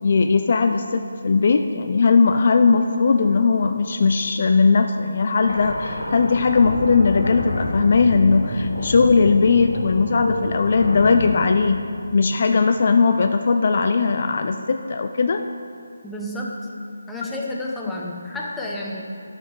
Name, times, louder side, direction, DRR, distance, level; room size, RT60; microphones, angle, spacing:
voice 1, 0.0-11.9 12.1-15.4, left 4 dB, 45° left, 6 dB, 0.4 m, -18 dB
sound 1, 5.4-12.8, left 1 dB, 75° left, 1.5 m, -29 dB
voice 2, 16.0-16.5 17.1-19.0, left 1 dB, 5° left, -3 dB, 0.8 m, -30 dB
12.0 x 6.4 x 4.0 m, 2.3 s
figure-of-eight pair, 155°, 0 cm